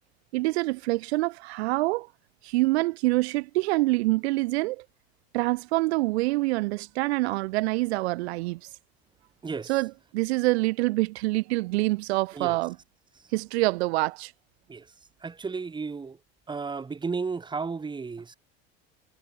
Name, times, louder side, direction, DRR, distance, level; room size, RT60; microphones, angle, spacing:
voice 1, 0.3-2.1 2.4-4.8 5.3-8.6 9.7-12.8 13.3-14.3, right 21 dB, 85° right, 0.8 m, -26 dB
voice 2, 9.4-9.8 12.3-12.6 14.7-14.9 15.2-16.2 16.5-18.3, right 4 dB, 15° right, 1.4 m, -33 dB
supercardioid pair, 115°, 31 cm